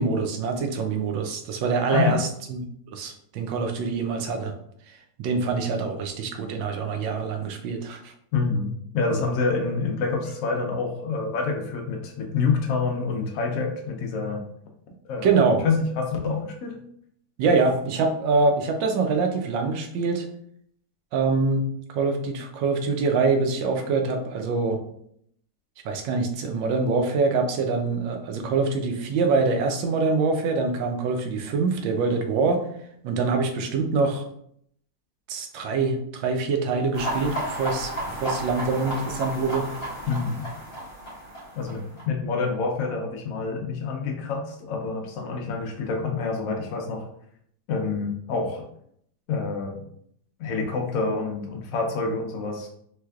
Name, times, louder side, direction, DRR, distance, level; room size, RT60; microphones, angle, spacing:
voice 1, 0.0-2.6 2.9-4.5 4.9-8.1 15.2-15.6 17.4-20.3 21.1-24.8 25.8-32.6 33.0-34.2 35.3-39.7, right 4 dB, 85° right, 5 dB, 1.3 m, -24 dB
voice 2, 8.3-14.4 15.0-15.4 15.6-16.8 40.1-40.4 41.6-47.1 47.7-48.6 49.3-49.8 50.4-52.7, left 4 dB, 75° left, 1 dB, 0.7 m, -27 dB
sound 1, 36.9-42.0, right 1 dB, 35° left, 1.4 m, -33 dB
3.4 x 3.2 x 2.3 m, 0.69 s
omnidirectional pair, 2.0 m